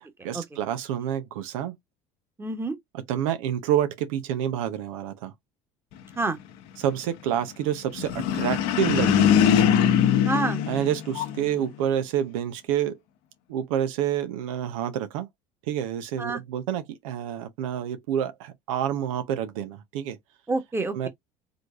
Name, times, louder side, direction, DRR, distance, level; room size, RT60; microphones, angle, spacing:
voice 1, 0.2-1.7 3.1-5.3 6.8-9.4 10.7-13.0 13.5-15.3 15.7-20.2 20.9-21.1, right 10 dB, 80° right, 0.7 m, -28 dB
voice 2, 2.4-2.7 6.2-6.4 10.2-10.6 16.2-16.4 20.5-21.1, right 3 dB, 15° right, 1.2 m, -27 dB
sound 1, 8.0-11.5, left 9 dB, 70° left, 0.9 m, -22 dB
3.9 x 3.3 x 2.3 m
hypercardioid pair, 80°, 17 cm